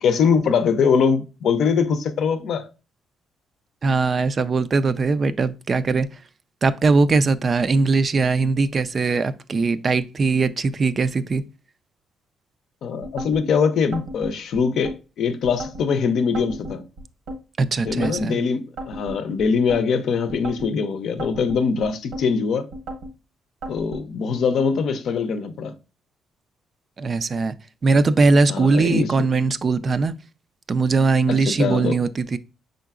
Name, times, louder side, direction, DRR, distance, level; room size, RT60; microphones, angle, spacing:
voice 1, 0.0-2.7 12.8-16.8 17.8-22.7 23.7-25.7 28.5-29.1 31.3-32.0, left 6 dB, 70° left, 0.6 m, -22 dB
voice 2, 3.8-6.1 6.6-11.4 17.6-18.4 27.0-27.5 27.8-30.1 30.7-32.4, right 4 dB, 40° right, 0.3 m, -20 dB
sound 1, 13.0-13.4 13.9-15.0 15.4-15.9 16.3-17.4 17.9-18.3 18.8-19.8 20.3-20.7 21.2-22.3 22.7-23.1 23.6-24.1, right 1 dB, 85° right, 1.2 m, -34 dB
5.6 x 3.8 x 2.3 m
cardioid pair, 90°, 0 cm